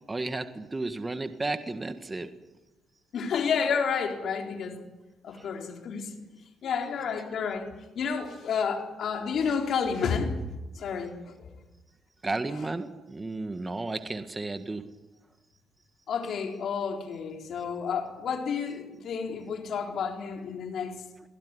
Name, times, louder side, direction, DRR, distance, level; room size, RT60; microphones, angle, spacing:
voice 1, 0.1-2.3 12.2-14.8, right 2 dB, 20° right, 9 dB, 1.7 m, -33 dB
voice 2, 3.1-4.8 5.2-6.1 6.6-7.7 7.9-10.4 10.7-11.5 16.1-21.0, left 6 dB, 65° left, 3 dB, 4.0 m, -30 dB
24.0 x 16.5 x 9.9 m, 1.1 s
cardioid pair, 90°, 0 cm